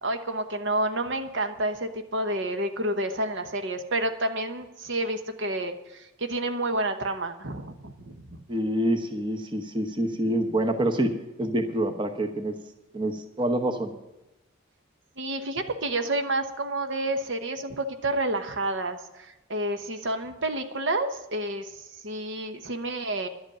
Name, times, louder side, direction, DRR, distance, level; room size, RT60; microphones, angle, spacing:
voice 1, 0.0-8.4 15.2-23.3, right 1 dB, 60° right, 7 dB, 1.0 m, -29 dB
voice 2, 8.5-11.1 11.4-12.5 12.9-13.9, right 1 dB, 25° right, 5 dB, 1.0 m, -26 dB
11.5 x 8.1 x 8.8 m, 0.93 s
head